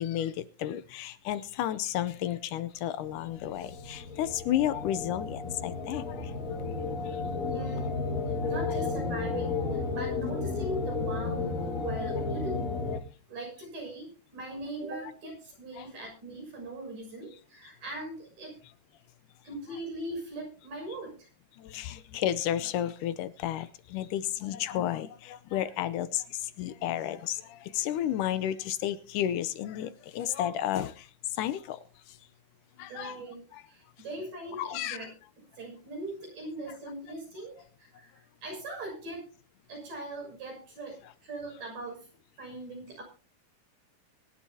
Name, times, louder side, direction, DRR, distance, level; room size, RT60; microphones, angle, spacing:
voice 1, 0.0-6.3 7.1-7.2 8.7-8.8 15.8-15.9 21.6-31.8 32.1-32.2 32.8-33.1 33.5-33.6 34.6-35.0, left 11 dB, 75° left, 2.2 m, -32 dB
sound 1, 3.1-13.0, left 4 dB, 60° left, 3.1 m, -33 dB
voice 2, 7.4-8.0 8.4-12.8 13.3-18.6 19.4-21.3 32.9-35.1 35.4-39.3 39.7-42.1 42.4-43.0, right 1 dB, 75° right, 8.1 m, -40 dB
23.5 x 11.5 x 2.8 m
omnidirectional pair, 3.8 m